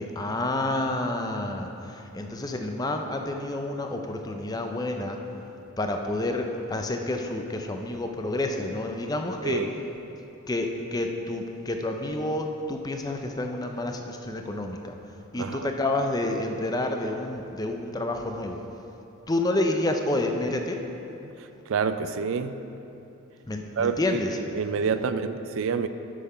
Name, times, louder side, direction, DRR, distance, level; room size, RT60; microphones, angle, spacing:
voice 1, 0.0-5.2 5.8-9.6 10.5-14.9 15.3-18.6 19.3-20.8 23.5-24.3, left 2 dB, 20° left, 4 dB, 0.5 m, -29 dB
voice 2, 15.4-15.7 21.2-22.6 23.8-25.9, right 5 dB, 70° right, 10 dB, 0.4 m, -28 dB
8.2 x 5.7 x 5.5 m, 2.9 s
head